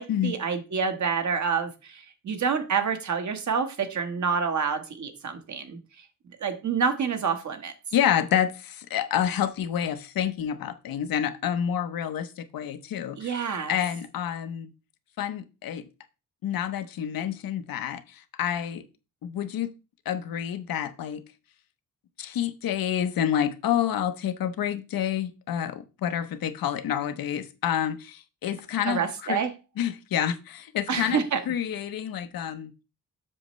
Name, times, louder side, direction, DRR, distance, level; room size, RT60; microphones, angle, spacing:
voice 1, 0.0-5.8 6.4-7.7 13.2-13.8 28.8-29.5 30.9-31.4, right 6 dB, 55° right, 1.3 m, -28 dB
voice 2, 7.9-13.4 13.7-14.7 15.2-15.8 16.4-18.0 18.4-18.8 19.2-19.7 20.1-21.2 22.2-29.0 29.3-29.4 29.8-32.7, left 9 dB, 85° left, 0.8 m, -28 dB
7.6 x 6.5 x 3.1 m
wide cardioid pair, 135°, 34 cm